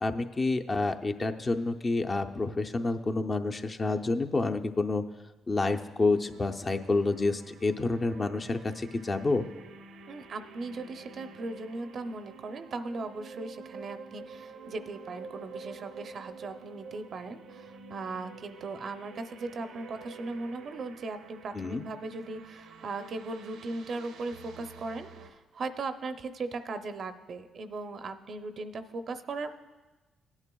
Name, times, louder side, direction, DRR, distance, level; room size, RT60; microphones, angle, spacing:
voice 1, 0.0-5.0 5.5-9.5 21.5-21.8, left 3 dB, 30° left, 6 dB, 0.6 m, -28 dB
sound 1, 6.1-25.3, right 4 dB, 90° right, 0.8 m, -49 dB
voice 2, 10.1-29.6, right 3 dB, 55° right, 9 dB, 0.6 m, -38 dB
17.0 x 9.7 x 2.3 m, 1.1 s
cardioid pair, 90°, 0 cm